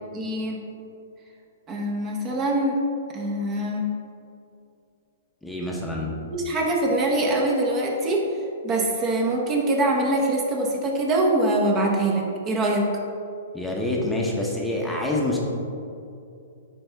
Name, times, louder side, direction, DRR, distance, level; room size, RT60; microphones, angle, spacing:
voice 1, 0.1-0.6 1.7-2.8 3.1-3.9 6.3-8.3 8.6-12.9, right 1 dB, 25° right, 0 dB, 0.8 m, -23 dB
voice 2, 5.4-6.2 13.5-15.4, left 1 dB, 5° left, -3 dB, 0.8 m, -26 dB
10.0 x 3.4 x 3.4 m, 2.6 s
hypercardioid pair, 135°, 0 cm